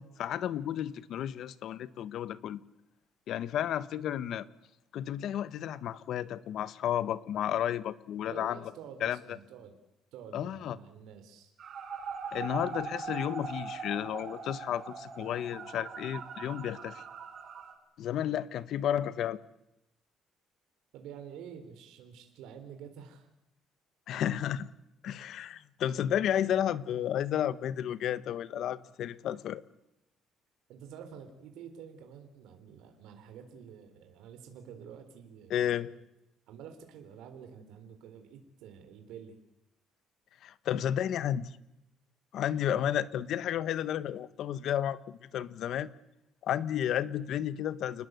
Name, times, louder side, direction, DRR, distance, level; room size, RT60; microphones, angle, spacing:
voice 1, 0.0-2.6 3.3-4.5 4.9-8.6 9.0-9.2 10.3-10.8 12.3-17.0 18.0-19.4 24.1-24.7 25.0-29.6 35.5-35.9 40.4-41.5 42.3-45.9 46.4-48.1, left 10 dB, 60° left, 16 dB, 1.2 m, -32 dB
voice 2, 8.3-9.7 10.1-11.5 20.9-23.3 24.1-24.3 30.7-36.0 36.5-39.4, right 7 dB, 85° right, 6 dB, 3.8 m, -49 dB
sound 1, 11.6-17.7, right 5 dB, 45° right, 5.2 m, -41 dB
29.0 x 20.5 x 8.1 m, 0.87 s
cardioid pair, 155°, 0 cm